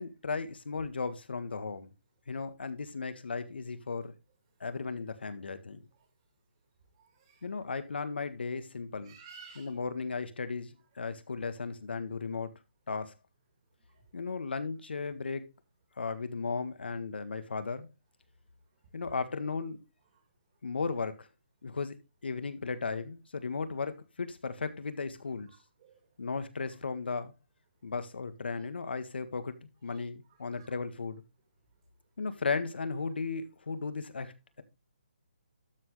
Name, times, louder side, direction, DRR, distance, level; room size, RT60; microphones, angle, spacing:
voice 1, 0.0-1.9 2.3-4.1 4.6-5.8 7.4-9.1 9.6-12.5 12.9-13.1 14.1-15.5 16.0-17.9 18.9-19.8 20.6-21.3 21.6-21.9 22.2-25.5 26.2-27.3 27.8-29.5 29.8-31.2 32.2-34.6, left 4 dB, 70° left, 1.7 m, -35 dB
voice 2, 7.0-7.7 9.0-9.8 13.9-14.0 20.1-20.2 25.5-26.1 28.6-28.7 29.9-30.8, right 6 dB, 25° right, 2.4 m, -56 dB
12.5 x 6.3 x 3.2 m
hypercardioid pair, 175°, 6 cm